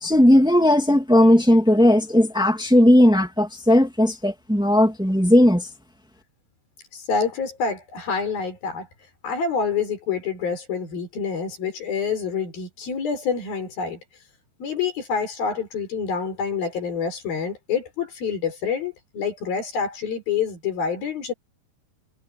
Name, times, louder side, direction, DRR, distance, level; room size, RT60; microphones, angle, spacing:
voice 1, 0.0-5.6, left 1 dB, 5° right, 0.6 m, -16 dB
voice 2, 6.9-8.9 9.2-14.0 14.6-21.3, left 6 dB, 55° left, 7.3 m, -27 dB
omnidirectional pair, 5.1 m